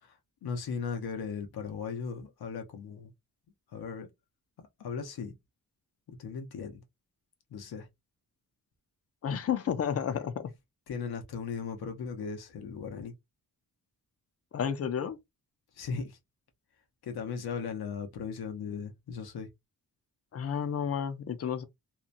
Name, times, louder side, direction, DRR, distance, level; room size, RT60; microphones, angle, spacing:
voice 1, 0.0-3.1 3.7-4.1 4.6-5.4 6.1-6.8 7.5-7.9 10.9-13.1 15.7-16.2 17.0-19.5, left 6 dB, 85° left, 0.8 m, -37 dB
voice 2, 9.2-10.5 14.5-15.2 20.3-21.6, left 8 dB, 40° left, 0.5 m, -31 dB
2.9 x 2.1 x 2.5 m
wide cardioid pair, 160°, 37 cm